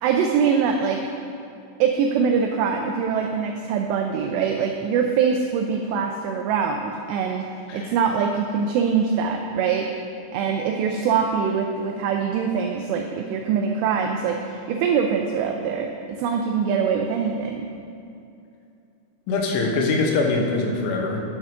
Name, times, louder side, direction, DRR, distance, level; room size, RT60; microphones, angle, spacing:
voice 1, 0.0-1.0 1.8-7.5 7.7-9.9 10.3-17.7, right 6 dB, 80° right, 3 dB, 2.5 m, -23 dB
voice 2, 19.3-21.2, left 3 dB, 90° left, 1 dB, 3.4 m, -23 dB
9.2 x 8.9 x 3.6 m, 2.6 s
omnidirectional pair, 5.3 m